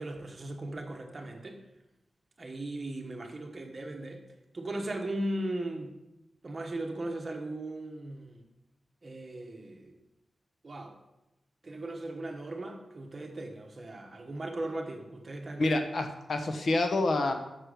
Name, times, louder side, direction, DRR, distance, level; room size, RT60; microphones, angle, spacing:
voice 1, 0.0-1.6 2.4-4.2 4.5-6.0 6.4-8.4 9.0-9.9 10.6-11.0 11.6-15.8, right 1 dB, 35° right, 3 dB, 1.3 m, -38 dB
voice 2, 15.6-17.3, left 2 dB, 60° left, 6 dB, 1.0 m, -27 dB
9.2 x 6.5 x 5.2 m, 0.95 s
wide cardioid pair, 115°, 0 cm